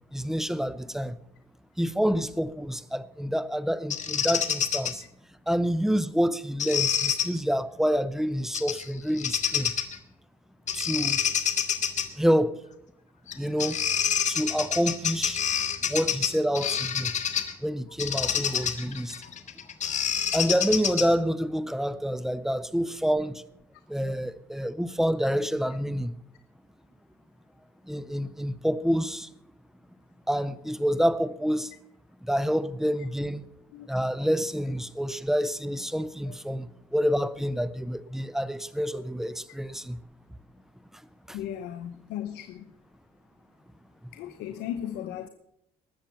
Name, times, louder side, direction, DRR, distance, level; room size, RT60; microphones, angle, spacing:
voice 1, 0.1-1.2 1.8-5.0 5.5-9.7 10.7-11.2 12.2-12.6 13.4-13.8 14.2-15.4 15.9-17.1 17.6-19.2 20.3-23.4 23.9-26.1 27.9-29.3 30.3-31.7 32.2-33.5 33.9-40.0 40.9-41.0 41.3-41.4, equal, ahead, 0.7 m, -27 dB
Bird vocalization bird call bird song, 3.9-4.9 6.6-7.3 8.5-8.8 9.2-10.0 10.7-12.1 13.3-13.4 13.6-17.5 18.0-21.2, left 8 dB, 45° left, 1.6 m, -27 dB
voice 2, 41.3-42.7 44.1-45.3, left 10 dB, 90° left, 0.9 m, -36 dB
19.5 x 7.3 x 7.0 m
cardioid pair, 110°, 17 cm